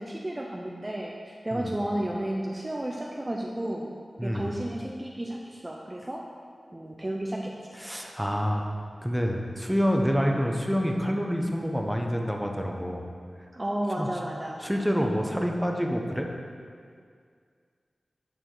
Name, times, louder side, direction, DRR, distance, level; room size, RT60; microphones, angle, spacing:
voice 1, 0.0-3.9 4.2-6.2 6.7-7.5 13.5-14.6, right 1 dB, 25° right, -1 dB, 0.6 m, -32 dB
voice 2, 4.2-4.5 7.7-8.6 9.0-13.0 14.0-14.1 14.6-16.3, equal, 5° right, 1 dB, 0.9 m, -27 dB
11.0 x 5.0 x 3.9 m, 2.1 s
wide cardioid pair, 60°, 0 cm